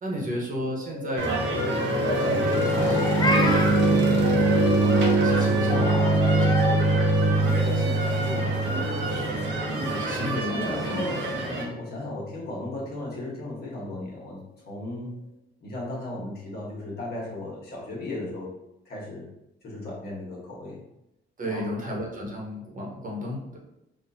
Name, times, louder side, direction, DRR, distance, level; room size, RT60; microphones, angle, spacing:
voice 1, 0.0-1.5 1.8-4.2 5.1-7.2 7.6-11.1 21.4-23.6, equal, 45° right, -2 dB, 1.1 m, -35 dB
sound 1, 0.9-12.9, right 2 dB, 90° right, 1.0 m, -24 dB
sound 2, 1.2-11.7, right 2 dB, 65° right, 0.8 m, -30 dB
Meow, 2.7-3.9 5.7-6.8, left 2 dB, 20° left, 0.4 m, -28 dB
voice 2, 10.1-15.2 15.6-18.6 18.8-19.3 19.6-20.8 21.4-21.8, left 1 dB, 55° left, -3 dB, 1.3 m, -36 dB
4.2 x 2.4 x 2.8 m, 0.87 s
cardioid pair, 90°, 20 cm